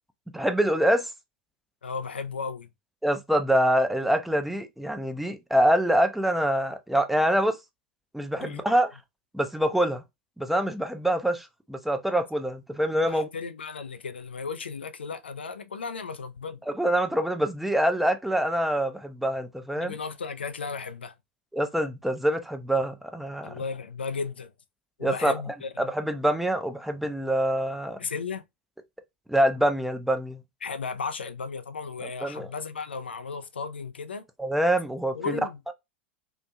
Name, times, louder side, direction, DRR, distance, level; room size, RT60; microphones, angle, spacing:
voice 1, 0.3-1.1 3.0-7.6 8.1-8.9 9.3-10.0 10.4-13.3 16.7-19.9 21.5-23.5 25.0-25.3 25.8-28.0 29.3-30.4 32.2-32.5 34.4-35.3, right 1 dB, 5° right, 0.5 m, -25 dB
voice 2, 1.8-2.7 8.4-8.6 13.1-16.6 19.8-21.1 23.4-24.5 25.0-25.7 28.0-28.4 30.6-34.2 35.1-35.6, left 5 dB, 80° left, 0.3 m, -35 dB
2.7 x 2.6 x 2.2 m
figure-of-eight pair, 85°, 6 cm